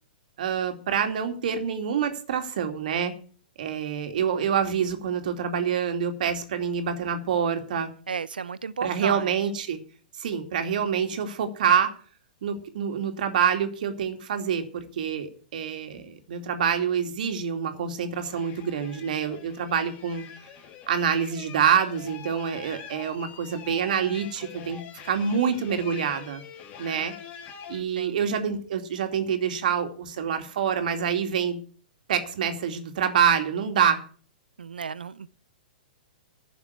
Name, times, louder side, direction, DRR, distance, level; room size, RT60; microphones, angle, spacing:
voice 1, 0.4-3.1 3.6-7.9 8.8-9.8 10.2-11.9 12.4-20.2 20.9-26.4 26.8-27.1 27.7-31.6 32.1-34.0, right 7 dB, 65° right, 2.4 m, -26 dB
voice 2, 8.1-9.3 26.9-27.0 27.7-28.2 34.6-35.3, right 6 dB, 90° right, 0.7 m, -34 dB
sound 1, 18.2-27.8, left 7 dB, 35° left, 2.6 m, -44 dB
11.5 x 6.8 x 9.6 m
hypercardioid pair, 125°, 5 cm